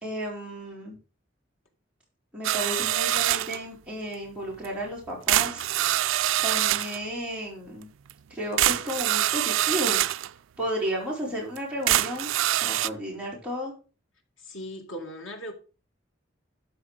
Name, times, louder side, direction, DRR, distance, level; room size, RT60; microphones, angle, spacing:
voice 1, 0.0-1.0 2.3-5.6 6.4-7.9 8.3-10.0 10.6-12.3 12.6-13.7, equal, 5° right, 4.5 m, -33 dB
sound 1, 2.4-3.6 4.6-4.7 5.3-7.0 8.1-8.2 8.6-10.3 10.9-11.0 11.6-11.7 11.9-12.9, right 14 dB, 85° right, 0.3 m, -25 dB
voice 2, 14.4-15.5, equal, 85° left, 2.2 m, -38 dB
12.5 x 5.1 x 5.0 m
head